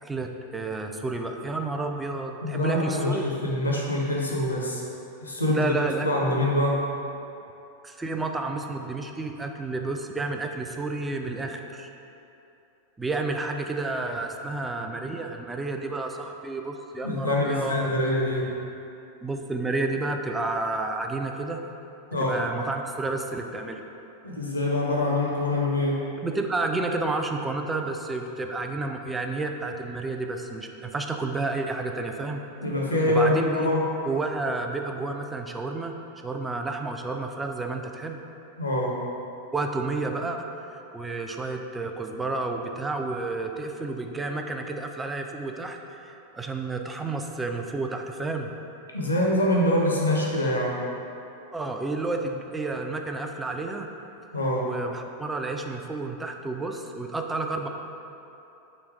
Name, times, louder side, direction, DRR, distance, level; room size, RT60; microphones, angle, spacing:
voice 1, 0.0-3.3 5.5-6.1 7.8-11.9 13.0-17.9 19.2-21.7 22.2-23.8 26.2-32.4 33.1-33.7 34.1-35.9 36.2-38.2 39.5-40.5 40.7-48.5 51.5-53.9 54.6-57.7, right 3 dB, 10° right, 4 dB, 0.3 m, -30 dB
voice 2, 2.4-4.8 5.2-5.7 6.0-6.8 17.0-18.5 22.1-22.4 24.2-26.0 32.6-33.8 38.6-39.0 48.9-50.8 54.3-54.7, left 1 dB, 80° left, -2 dB, 0.7 m, -25 dB
3.3 x 3.1 x 4.6 m, 2.9 s
figure-of-eight pair, 90°, 0 cm